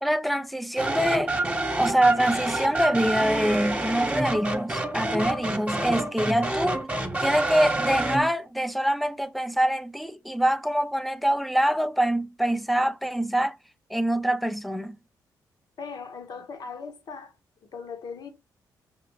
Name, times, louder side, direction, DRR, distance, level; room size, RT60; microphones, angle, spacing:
voice 1, 0.0-1.3 1.8-6.9 7.2-13.6 13.9-15.0, right 1 dB, ahead, 0.5 m, -25 dB
sound 1, 0.8-8.3, right 2 dB, 15° right, 1.1 m, -28 dB
voice 2, 15.8-17.3 17.7-18.3, left 5 dB, 60° left, 1.1 m, -38 dB
5.8 x 2.8 x 3.0 m
supercardioid pair, 65°, 8 cm